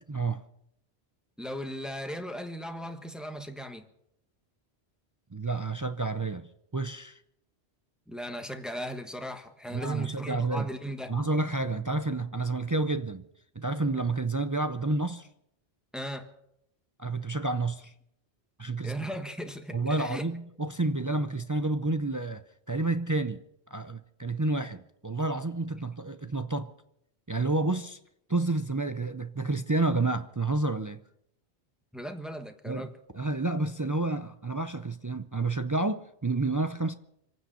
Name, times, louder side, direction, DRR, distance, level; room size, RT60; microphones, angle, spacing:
voice 1, 0.1-0.4 5.3-7.2 9.7-10.7 11.1-13.3 13.6-15.3 17.0-17.9 18.6-19.0 19.7-23.4 23.7-26.7 27.3-28.0 28.3-31.0 32.7-36.9, right 2 dB, 25° right, 0.4 m, -30 dB
voice 2, 1.4-3.8 8.1-11.1 15.9-16.3 18.8-20.3 31.9-32.9, equal, ahead, 1.2 m, -37 dB
26.5 x 9.5 x 5.6 m
omnidirectional pair, 1.2 m